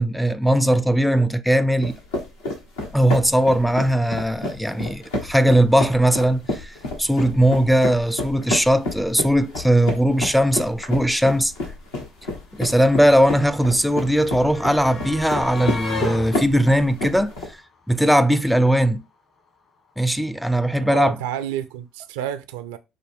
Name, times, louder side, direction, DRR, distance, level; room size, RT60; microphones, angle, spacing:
voice 1, 0.0-1.9 2.9-11.5 12.5-17.3 17.9-19.0 20.0-21.2, equal, ahead, 0.4 m, -19 dB
sound 1, 1.8-17.5, left 1 dB, 85° left, 1.2 m, -30 dB
sound 2, 11.7-11.8 12.0-18.2 19.4-19.5 19.8-19.9, left 2 dB, 50° left, 1.8 m, -36 dB
voice 2, 20.8-22.8, right 11 dB, 80° right, 0.4 m, -30 dB
4.9 x 2.2 x 3.4 m
hypercardioid pair, 60°, 0 cm